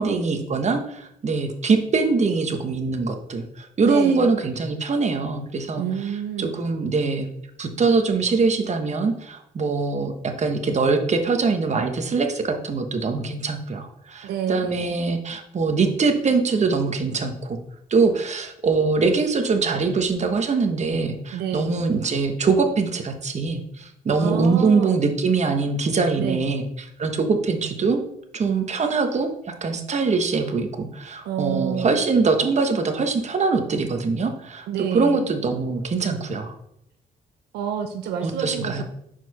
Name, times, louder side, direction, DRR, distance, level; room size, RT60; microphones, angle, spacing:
voice 1, 0.0-5.8 6.4-7.3 7.6-17.6 17.9-26.6 27.0-28.0 28.3-29.3 29.6-34.7 34.9-36.5 38.2-38.8, right 4 dB, 45° right, 5 dB, 1.1 m, -23 dB
voice 2, 3.8-4.3 5.8-6.6 14.2-15.0 21.3-21.7 24.2-25.0 26.2-26.4 31.2-32.0 34.7-35.3 37.5-38.8, right 8 dB, 90° right, 6 dB, 0.6 m, -28 dB
4.7 x 4.4 x 5.6 m, 0.74 s
supercardioid pair, 65°, 16 cm